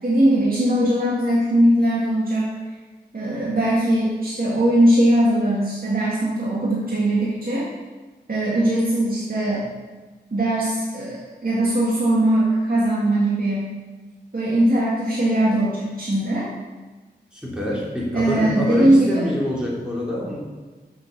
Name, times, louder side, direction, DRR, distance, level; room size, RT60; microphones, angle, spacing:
voice 1, 0.0-2.5 3.1-7.7 8.3-9.7 10.3-13.7 14.3-16.5 18.1-19.2, right 1 dB, 55° right, -7 dB, 2.0 m, -20 dB
voice 2, 17.3-20.4, left 1 dB, 5° right, -5 dB, 3.1 m, -26 dB
6.9 x 6.3 x 6.7 m, 1.3 s
wide cardioid pair, 60°, 18 cm